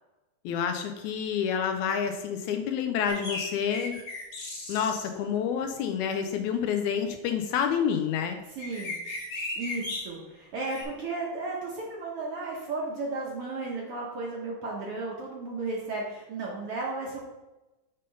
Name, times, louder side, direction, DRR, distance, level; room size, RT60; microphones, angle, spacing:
voice 1, 0.5-4.0 4.7-8.4, left 7 dB, 80° left, 6 dB, 1.9 m, -28 dB
sound 1, 3.1-5.1 8.6-10.0 10.7-10.8, left 2 dB, 50° left, 2.6 m, -36 dB
voice 2, 8.5-9.0 9.6-17.2, right 3 dB, 60° right, -3 dB, 1.6 m, -34 dB
6.7 x 3.7 x 5.3 m, 1.0 s
omnidirectional pair, 3.6 m